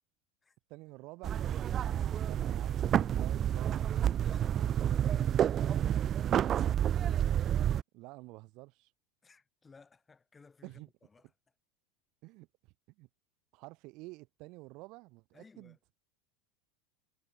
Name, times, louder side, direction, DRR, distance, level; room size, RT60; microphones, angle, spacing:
voice 1, 0.7-1.4 2.3-2.8 3.1-3.9 7.9-8.9 10.6-10.9 12.2-12.5 13.0-13.1 13.5-15.8, right 23 dB, 55° right, 2.5 m, -49 dB
sound 1, 1.2-7.8, right 10 dB, 35° right, 0.6 m, -29 dB
voice 2, 4.2-5.7 9.2-11.3 15.3-15.8, left 4 dB, 20° left, 4.9 m, -58 dB
hypercardioid pair, 100°, 0 cm